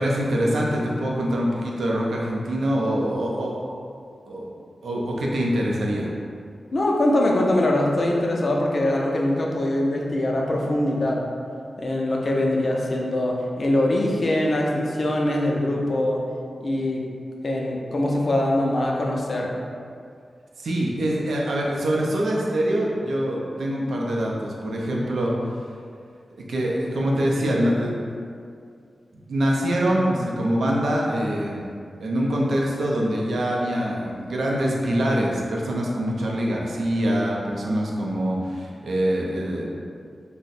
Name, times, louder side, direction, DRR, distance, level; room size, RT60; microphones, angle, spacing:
voice 1, 0.0-3.6 4.3-4.5 4.8-6.1 20.6-25.7 26.5-27.9 29.1-31.6 32.0-39.6, equal, 85° right, -3 dB, 0.4 m, -24 dB
voice 2, 6.7-11.3 11.8-16.2 16.6-17.0 17.4-19.5, left 1 dB, 40° left, -2 dB, 0.4 m, -23 dB
2.5 x 2.0 x 3.9 m, 2.3 s
wide cardioid pair, 175°, 0 cm